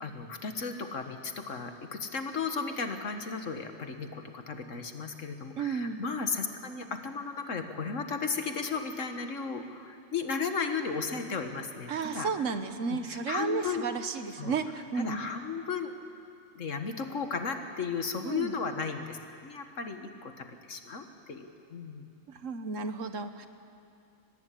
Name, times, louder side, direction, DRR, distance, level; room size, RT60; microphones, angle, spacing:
voice 1, 0.0-12.5 12.9-13.9 14.4-14.6 15.0-15.9 16.5-22.1, left 5 dB, 70° left, 6 dB, 1.8 m, -35 dB
voice 2, 5.6-6.0 11.9-15.2 18.2-18.5 22.3-23.5, right 5 dB, 70° right, 9 dB, 1.5 m, -33 dB
23.0 x 20.0 x 8.5 m, 2.5 s
omnidirectional pair, 1.4 m